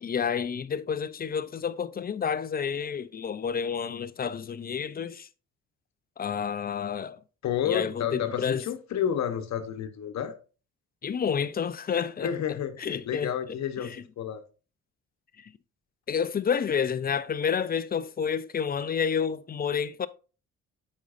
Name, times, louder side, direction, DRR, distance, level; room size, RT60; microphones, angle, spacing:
voice 1, 0.0-5.3 6.2-7.2 7.7-8.6 11.0-12.3 12.8-13.3 13.8-13.9 15.4-15.5 16.1-20.1, left 7 dB, 30° left, 0.4 m, -29 dB
voice 2, 7.4-10.4 12.2-14.4, left 9 dB, 65° left, 1.0 m, -30 dB
8.3 x 5.3 x 2.5 m
cardioid pair, 90°, 30 cm